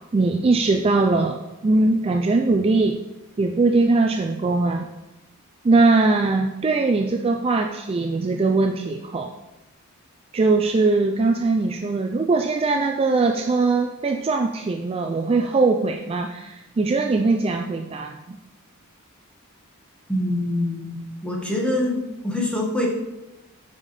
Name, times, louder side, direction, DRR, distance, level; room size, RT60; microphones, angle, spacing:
voice 1, 0.1-3.0 3.4-4.9 5.6-9.3 10.3-18.4, right 3 dB, 25° right, 4 dB, 0.3 m, -21 dB
voice 2, 20.1-22.0 22.2-22.9, left 1 dB, 5° left, -2 dB, 1.4 m, -24 dB
8.7 x 4.9 x 4.2 m, 1.0 s
head